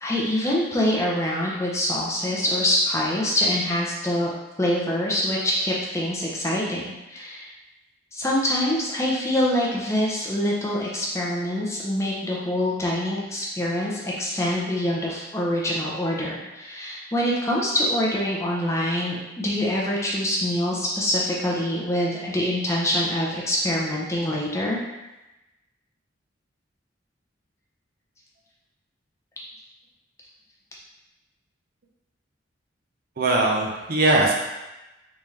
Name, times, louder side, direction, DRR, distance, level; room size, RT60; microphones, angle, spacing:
voice 1, 0.0-4.3 4.6-7.5 8.1-24.8, left 1 dB, 15° left, -4 dB, 0.5 m, -25 dB
voice 2, 33.2-34.3, right 2 dB, 50° right, -1 dB, 0.6 m, -20 dB
3.6 x 2.8 x 3.1 m, 1.0 s
head